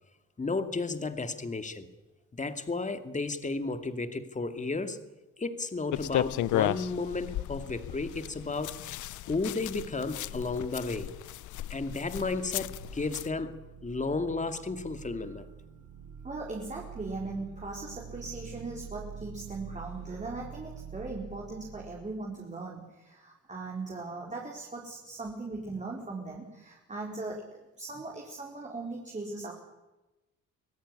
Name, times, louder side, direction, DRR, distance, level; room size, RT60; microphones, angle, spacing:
voice 1, 0.4-1.9 2.3-5.0 5.4-8.8 9.2-11.1 11.7-15.5, left 3 dB, 25° left, 9 dB, 2.3 m, -33 dB
sound 1, 5.9-13.3, left 14 dB, 75° left, 0.7 m, -34 dB
sound 2, 12.4-22.2, right 7 dB, 90° right, 5.3 m, -46 dB
voice 2, 16.2-29.5, right 3 dB, 25° right, -1 dB, 4.7 m, -39 dB
25.0 x 17.0 x 9.9 m, 1.1 s
cardioid pair, 90°, 30 cm